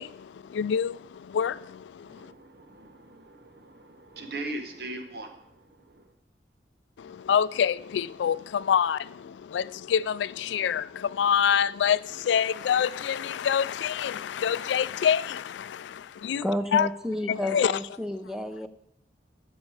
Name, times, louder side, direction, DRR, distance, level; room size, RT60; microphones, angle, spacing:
voice 1, 0.0-2.3 7.0-16.4 16.7-16.9 17.3-17.7, left 8 dB, 90° left, 0.3 m, -26 dB
voice 2, 2.0-6.1, right 2 dB, 65° right, 1.1 m, -40 dB
voice 3, 16.4-18.7, left 1 dB, 5° right, 0.5 m, -31 dB
14.5 x 5.3 x 4.7 m
head